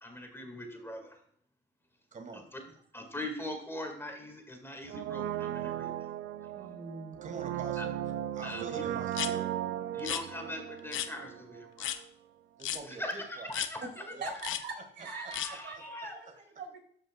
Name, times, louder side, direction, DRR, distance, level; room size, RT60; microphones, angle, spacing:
voice 1, 0.0-1.2 2.5-2.6 2.9-5.9 7.8-7.9 8.4-8.8 9.9-12.0 13.0-13.1 13.5-13.8 15.3-16.2, left 1 dB, 10° left, 3 dB, 2.0 m, -41 dB
voice 2, 2.1-2.7 7.2-8.0 8.3-9.5 12.6-13.5 14.1-14.3 15.2-16.4, right 4 dB, 40° right, 5 dB, 1.7 m, -46 dB
Brass instrument, 4.9-11.7 12.0-12.1, right 11 dB, 80° right, 0.5 m, -36 dB
voice 3, 6.5-7.3 10.2-10.3 13.8-14.3 14.6-16.8, right 3 dB, 65° right, 1 dB, 3.3 m, -43 dB
sound 1, 9.1-9.3 10.0-10.2 10.9-11.1 11.8-12.0 12.6-12.8 13.5-13.7 14.4-14.6 15.3-15.5, left 11 dB, 80° left, 0.6 m, -34 dB
13.0 x 5.6 x 2.3 m, 0.64 s
cardioid pair, 90°, 20 cm